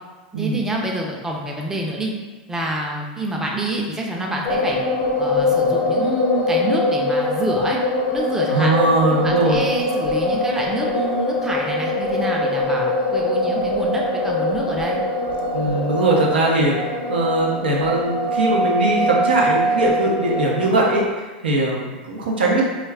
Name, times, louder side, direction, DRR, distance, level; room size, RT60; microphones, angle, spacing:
voice 1, 0.3-2.1 2.5-4.8 5.2-7.8 8.1-8.7 9.2-15.0, right 1 dB, 10° right, -2 dB, 0.5 m, -27 dB
sound 1, 4.4-21.1, left 1 dB, 60° left, 0.5 m, -22 dB
voice 2, 8.5-9.6 15.5-16.8 17.1-21.0 21.4-22.6, right 2 dB, 85° right, -2 dB, 0.6 m, -20 dB
2.3 x 2.3 x 3.3 m, 1.3 s
hypercardioid pair, 105°, 5 cm